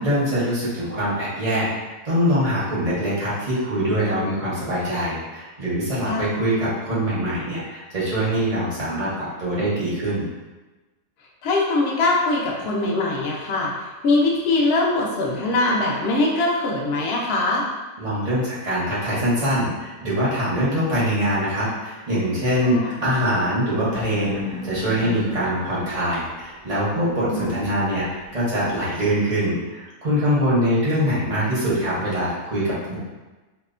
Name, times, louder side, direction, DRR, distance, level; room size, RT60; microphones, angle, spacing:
voice 1, 0.0-10.3 18.0-33.0, equal, 45° right, -9 dB, 0.5 m, -23 dB
voice 2, 6.1-6.4 11.4-17.7 22.6-22.9 27.3-27.5, left 2 dB, 70° left, -3 dB, 0.6 m, -22 dB
sound 1, 23.9-28.9, left 1 dB, 90° right, 1.1 m, -37 dB
2.7 x 2.1 x 2.4 m, 1.2 s
omnidirectional pair, 1.6 m